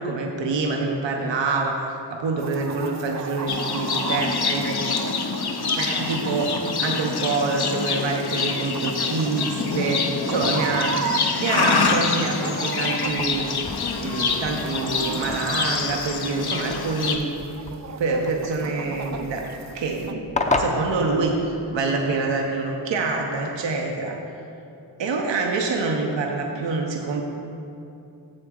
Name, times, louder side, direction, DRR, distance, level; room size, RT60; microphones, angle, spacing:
voice 1, 0.0-1.8 2.1-4.8 5.8-11.0 11.4-13.5 14.0-17.3 18.0-19.4 19.7-20.3 20.6-21.3 21.7-24.2 25.0-27.2, right 3 dB, 80° right, 1 dB, 0.8 m, -26 dB
Chicken rooster, 2.4-20.1, right 6 dB, 40° right, 0.4 m, -36 dB
Livestock farm animals working animals, 3.5-17.2, left 5 dB, 60° left, 0.7 m, -26 dB
sound 1, 13.1-21.8, left 2 dB, 15° left, 0.6 m, -33 dB
7.8 x 6.9 x 3.7 m, 2.7 s
cardioid pair, 60°, 43 cm